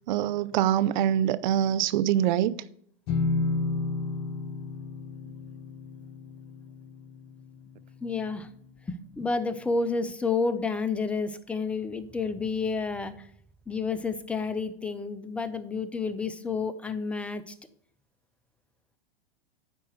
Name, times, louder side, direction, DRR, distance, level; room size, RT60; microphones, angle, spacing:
voice 1, 0.1-2.5, right 11 dB, 50° right, 0.6 m, -24 dB
sound 1, 3.1-8.7, left 3 dB, 50° left, 1.1 m, -33 dB
voice 2, 8.0-8.5 8.9-13.3 13.7-17.5, left 4 dB, 5° left, 0.4 m, -30 dB
9.8 x 4.1 x 6.3 m
hypercardioid pair, 110°, 29 cm